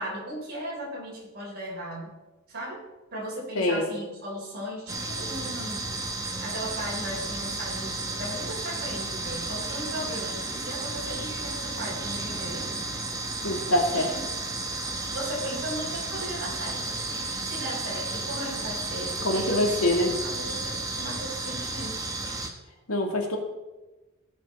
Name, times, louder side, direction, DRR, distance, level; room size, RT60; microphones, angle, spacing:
voice 1, 0.0-2.1 2.5-2.8 3.1-5.9 6.4-12.7 13.9-14.2 15.1-17.0 17.4-19.6 20.2-22.1, right 1 dB, 50° right, -3 dB, 3.9 m, -37 dB
voice 2, 3.6-3.9 13.4-14.1 19.2-20.1 22.9-23.4, left 1 dB, 85° left, 1 dB, 2.1 m, -24 dB
sound 1, 4.9-22.5, right 2 dB, 15° right, 1.1 m, -33 dB
17.0 x 5.8 x 4.2 m, 1.1 s
head